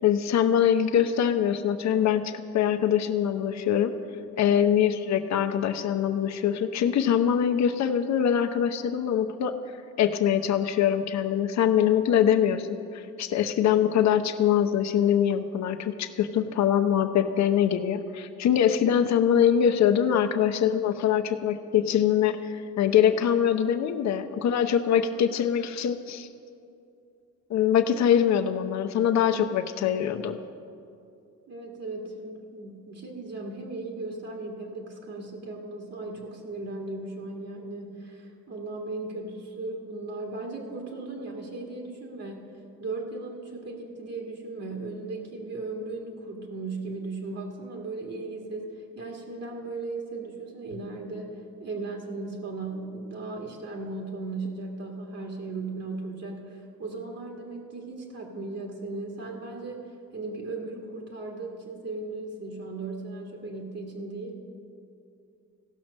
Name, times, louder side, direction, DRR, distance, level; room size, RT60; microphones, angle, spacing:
voice 1, 0.0-3.9 4.4-9.6 10.0-26.3 27.5-30.4, left 9 dB, 65° left, 8 dB, 0.7 m, -23 dB
voice 2, 4.3-4.6 31.5-42.5 42.8-64.4, right 3 dB, 55° right, 1 dB, 1.8 m, -37 dB
15.5 x 6.0 x 6.3 m, 2.5 s
cardioid pair, 90°, 30 cm